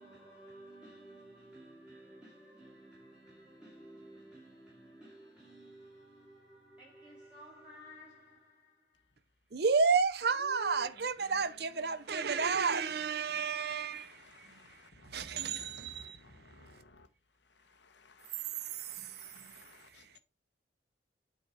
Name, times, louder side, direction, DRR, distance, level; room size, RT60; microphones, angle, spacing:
voice 1, 0.0-9.2, right 1 dB, 5° right, 2.4 m, -54 dB
voice 2, 9.5-14.8 15.1-16.2 18.7-19.5, right 5 dB, 60° right, 0.6 m, -32 dB
voice 3, 10.3-17.1 17.3-20.2, left 2 dB, 75° left, 1.1 m, -56 dB
8.3 x 4.2 x 4.8 m
head